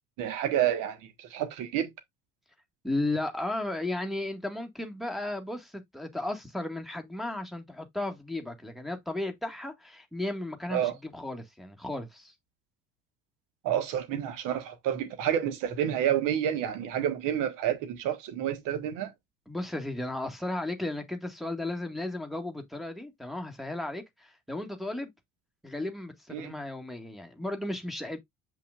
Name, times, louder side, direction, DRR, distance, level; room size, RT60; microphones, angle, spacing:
voice 1, 0.2-1.9 10.7-11.0 13.6-19.1 26.3-26.5, right 10 dB, 55° right, 1.6 m, -29 dB
voice 2, 2.8-12.3 19.5-25.1 25.6-28.2, left 2 dB, ahead, 1.8 m, -34 dB
7.6 x 5.6 x 2.5 m
figure-of-eight pair, 60°, 38 cm